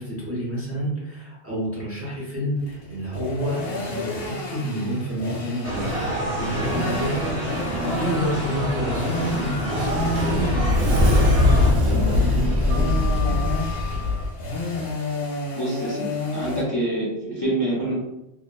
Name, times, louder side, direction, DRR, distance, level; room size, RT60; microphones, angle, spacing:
voice 1, 0.0-13.6, equal, 15° right, -7 dB, 0.5 m, -29 dB
sound 1, 2.6-16.6, left 2 dB, 70° left, 0.9 m, -31 dB
sound 2, 5.6-11.7, right 1 dB, 60° right, 1.0 m, -28 dB
Sliding door, 9.5-14.3, left 2 dB, 90° right, 1.0 m, -21 dB
voice 2, 15.6-16.1 16.3-17.9, right 1 dB, 30° left, -7 dB, 0.5 m, -26 dB
2.8 x 2.0 x 2.2 m, 0.93 s
omnidirectional pair, 1.2 m